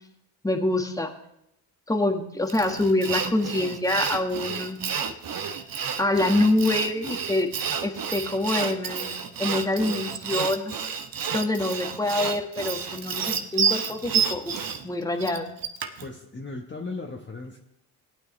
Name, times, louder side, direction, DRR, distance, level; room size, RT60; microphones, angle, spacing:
voice 1, 0.4-1.1 1.9-4.8 6.0-7.5 7.8-9.1 9.4-10.7 11.3-14.6 14.8-15.5, left 2 dB, 5° left, 4 dB, 1.6 m, -25 dB
Sawing, 2.5-16.1, right 7 dB, 45° right, 1.1 m, -30 dB
voice 2, 16.0-17.6, left 3 dB, 20° left, 1 dB, 1.3 m, -36 dB
18.0 x 9.0 x 3.2 m, 0.79 s
hypercardioid pair, 50°, 49 cm